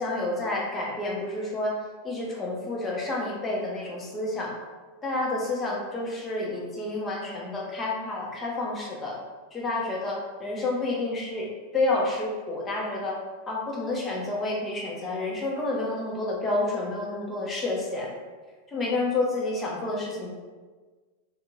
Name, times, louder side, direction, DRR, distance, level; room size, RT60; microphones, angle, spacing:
voice 1, 0.0-1.7 2.0-4.5 5.0-9.2 9.5-11.5 11.7-13.2 13.5-18.1 18.7-20.3, left 2 dB, 20° left, -3 dB, 0.7 m, -29 dB
2.5 x 2.5 x 3.0 m, 1.4 s
figure-of-eight pair, 90°, 0 cm